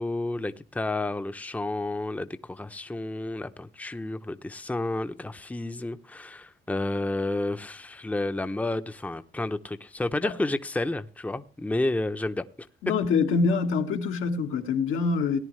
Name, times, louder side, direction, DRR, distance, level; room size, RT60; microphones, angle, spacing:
voice 1, 0.0-12.7, left 2 dB, 5° left, 0.7 m, -31 dB
voice 2, 12.8-15.4, left 4 dB, 85° left, 1.6 m, -25 dB
18.0 x 10.0 x 3.2 m
cardioid pair, 90°, 20 cm